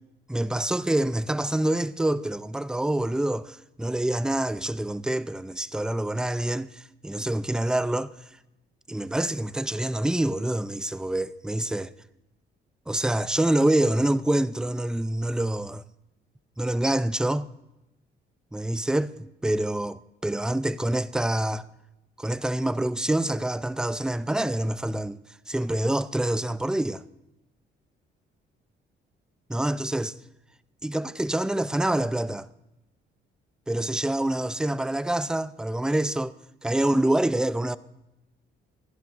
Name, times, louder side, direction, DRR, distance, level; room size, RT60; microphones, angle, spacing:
voice 1, 0.3-8.1 8.9-11.9 12.9-15.8 16.6-17.5 18.5-19.1 19.4-21.7 22.2-25.2 25.5-27.0 29.5-30.1 30.8-32.5 33.7-36.3 36.6-37.8, right 1 dB, 5° right, 0.4 m, -26 dB
27.0 x 11.5 x 2.6 m
cardioid pair, 90°, 20 cm